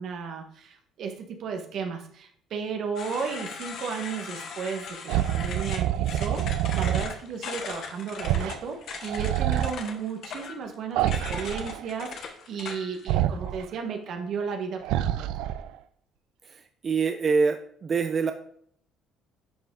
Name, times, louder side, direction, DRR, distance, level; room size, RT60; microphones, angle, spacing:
voice 1, 0.0-15.3, right 5 dB, 60° right, 3 dB, 1.4 m, -34 dB
sound 1, 3.0-13.1, left 5 dB, 60° left, 1.2 m, -39 dB
sound 2, 5.1-7.1 8.2-8.6 8.9-9.7 11.0-11.8 13.1-13.6 14.8-15.8, right 12 dB, 80° right, 0.4 m, -27 dB
voice 2, 16.8-18.3, right 5 dB, 35° right, 7 dB, 0.6 m, -24 dB
10.0 x 4.9 x 3.8 m, 0.62 s
cardioid pair, 105°, 0 cm